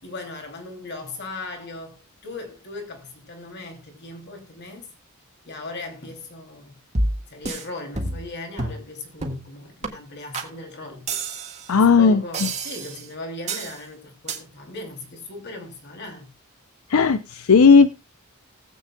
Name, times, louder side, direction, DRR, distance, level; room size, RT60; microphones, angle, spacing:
voice 1, 0.0-4.9 5.4-6.7 7.3-11.1 11.8-16.3, left 2 dB, 55° left, 2.9 m, -38 dB
sound 1, 6.9-7.6 8.0-8.3 8.6-8.8 9.2-9.5 9.8-9.9 10.3-10.5 11.1-11.7 12.3-13.1 13.5-13.8 14.3-14.4, right 2 dB, 35° right, 1.7 m, -28 dB
voice 2, 11.7-12.5 16.9-17.9, left 5 dB, 80° left, 0.5 m, -15 dB
19.5 x 8.2 x 2.3 m
head